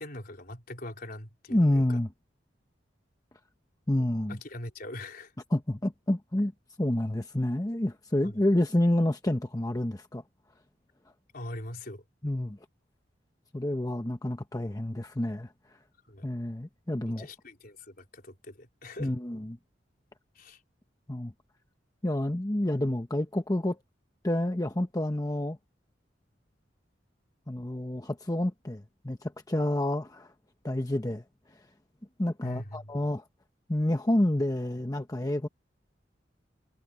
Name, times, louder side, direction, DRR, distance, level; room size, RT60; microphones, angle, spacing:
voice 1, 0.0-2.0 4.0-5.3 8.2-8.4 11.3-12.0 16.1-16.3 17.2-19.1 20.3-20.6 32.4-33.0, left 1 dB, 55° left, 4.3 m, -42 dB
voice 2, 1.5-2.1 3.9-4.4 5.5-6.5 6.8-10.2 12.2-12.6 13.5-15.5 16.2-17.3 19.0-19.6 21.1-21.3 22.0-23.8 24.2-25.6 27.5-30.3 30.6-31.2 32.2-33.2 33.7-35.5, left 1 dB, 20° left, 0.9 m, -28 dB
head